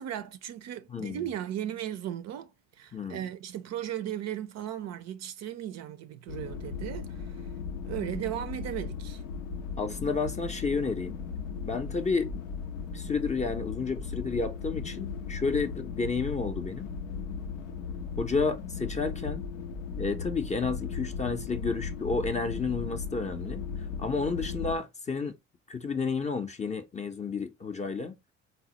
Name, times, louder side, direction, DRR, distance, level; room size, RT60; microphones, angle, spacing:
voice 1, 0.0-2.5 2.8-7.3 7.9-9.2, right 11 dB, 45° right, 0.5 m, -36 dB
voice 2, 0.9-1.3 2.9-3.2 9.8-11.2 11.6-12.3 12.9-16.9 18.2-19.5 20.0-23.6 24.0-25.3 25.7-28.2, left 4 dB, 20° left, 0.5 m, -31 dB
sound 1, 6.3-24.8, left 5 dB, 85° left, 0.5 m, -37 dB
4.0 x 2.0 x 2.9 m
hypercardioid pair, 55°, 38 cm